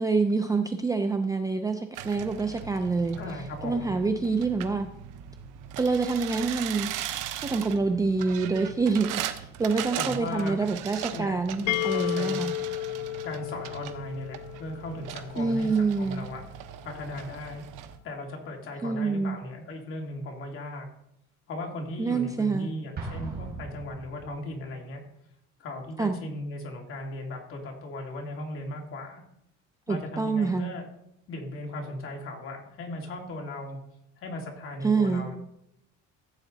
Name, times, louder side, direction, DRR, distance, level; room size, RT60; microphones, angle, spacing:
voice 1, 0.0-3.2 3.6-4.9 5.8-6.9 7.4-12.5 15.4-16.3 18.8-19.4 22.0-22.7 26.0-26.2 29.9-30.7 34.8-35.3, right 4 dB, 10° right, 6 dB, 0.4 m, -26 dB
sound 1, 1.9-18.0, right 10 dB, 80° right, 1.0 m, -39 dB
voice 2, 3.2-4.0 10.0-10.7 11.1-12.4 13.2-17.6 18.0-20.9 21.5-25.0 25.6-29.2 29.9-30.8 31.3-33.8 34.2-35.4, left 1 dB, 45° left, 1 dB, 2.7 m, -37 dB
sound 2, 11.7-15.4, left 16 dB, 70° left, 0.6 m, -32 dB
Explosion, 23.0-24.6, right 3 dB, 30° right, 3.4 m, -38 dB
15.0 x 8.2 x 4.0 m, 0.78 s
cardioid pair, 175°, 31 cm